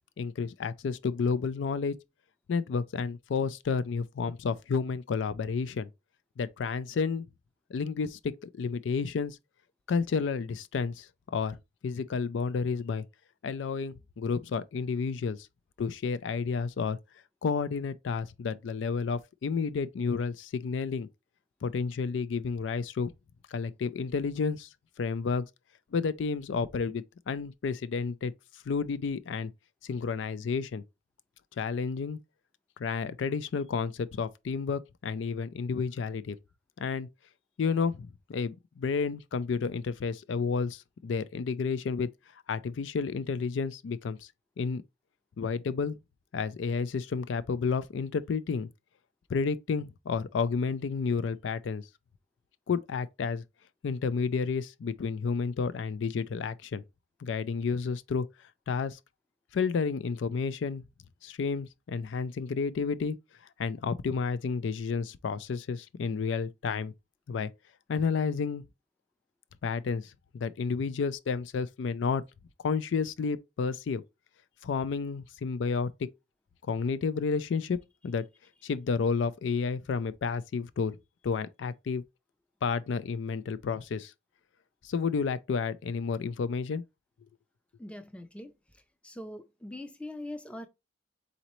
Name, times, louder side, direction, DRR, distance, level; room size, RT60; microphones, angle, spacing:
voice 1, 0.2-2.0 2.5-5.9 6.4-7.3 7.7-9.4 9.9-11.6 11.8-13.0 13.4-15.4 15.8-17.0 17.4-21.1 21.6-23.1 23.5-24.7 25.0-25.5 25.9-28.3 28.7-29.5 29.8-30.8 31.6-32.2 32.8-36.4 36.8-37.1 37.6-42.1 42.5-44.2 44.6-44.8 45.4-46.0 46.3-48.7 49.3-51.8 52.7-53.4 53.8-56.8 57.2-58.3 58.7-59.0 59.5-60.8 61.2-63.2 63.6-66.9 67.3-67.5 67.9-68.6 69.6-72.2 72.6-74.0 74.6-76.1 76.6-77.8 78.0-78.2 78.6-81.0 81.2-82.0 82.6-84.1 84.8-86.8, left 5 dB, 90° left, 0.4 m, -31 dB
voice 2, 87.8-88.5 89.0-90.7, left 1 dB, 5° left, 0.4 m, -42 dB
4.2 x 3.9 x 3.0 m
head